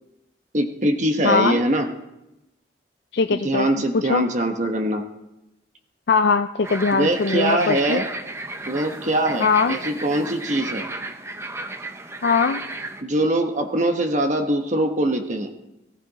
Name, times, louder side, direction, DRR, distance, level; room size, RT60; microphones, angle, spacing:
voice 1, 0.5-1.9 3.3-5.0 6.9-8.1 8.7-10.8 13.0-15.5, right 1 dB, 40° right, 4 dB, 1.2 m, -22 dB
voice 2, 1.2-1.6 3.1-3.7 4.1-4.2 6.1-8.0 9.4-9.8 12.2-12.6, left 4 dB, 65° left, 9 dB, 0.4 m, -20 dB
sound 1, 6.6-13.0, right 2 dB, 15° right, 0.8 m, -33 dB
18.5 x 14.5 x 4.1 m, 0.95 s
head